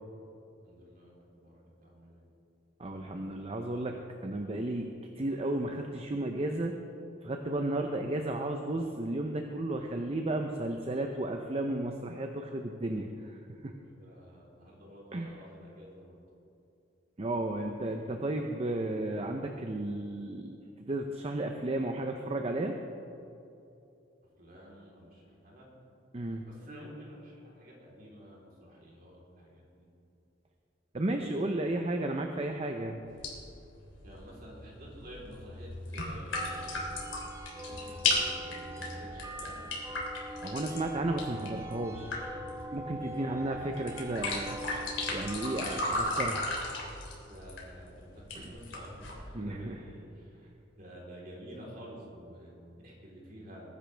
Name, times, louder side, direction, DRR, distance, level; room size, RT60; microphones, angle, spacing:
voice 1, 0.6-2.2 13.8-16.1 24.4-25.7 26.4-29.9 31.1-31.3 34.0-36.8 37.5-39.7 43.0-43.6 47.2-50.5 50.8-53.7, equal, 50° right, -4 dB, 3.7 m, -50 dB
voice 2, 2.8-4.9 5.2-6.8 7.2-13.4 13.6-13.7 15.1-15.3 17.2-20.6 20.9-22.8 26.1-26.4 30.9-33.0 40.4-42.1 42.7-44.6 45.1-46.4 48.3-48.5 49.3-49.8, right 1 dB, 35° right, 4 dB, 0.7 m, -33 dB
sound 1, 33.1-49.1, left 2 dB, 85° left, 3.0 m, -37 dB
sound 2, 36.3-46.5, right 1 dB, 15° right, 1.0 m, -43 dB
21.0 x 10.5 x 3.4 m, 2.8 s
head